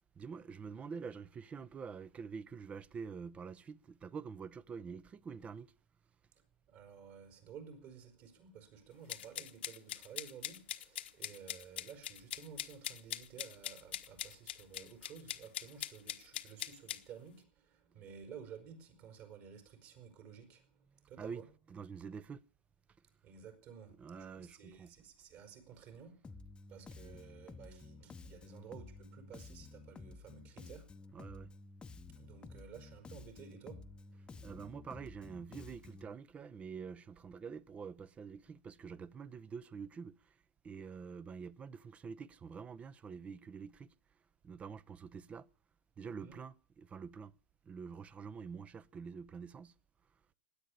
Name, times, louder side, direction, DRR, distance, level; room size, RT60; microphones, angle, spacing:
voice 1, 0.1-5.7 17.9-18.0 21.2-22.4 24.0-24.9 31.1-31.5 34.4-40.4 40.6-43.9 44.4-45.5 46.0-47.3 47.6-49.7, right 6 dB, 20° right, 0.7 m, -47 dB
voice 2, 6.7-21.4 23.2-26.2 26.7-31.4 32.1-34.5 46.2-46.4, right 7 dB, 50° right, 4.7 m, -54 dB
sound 1, 9.1-17.0, left 12 dB, 80° left, 1.3 m, -42 dB
Bass guitar, 26.2-36.1, left 3 dB, 15° left, 0.9 m, -52 dB
16.5 x 10.0 x 8.4 m
hypercardioid pair, 120°, 6 cm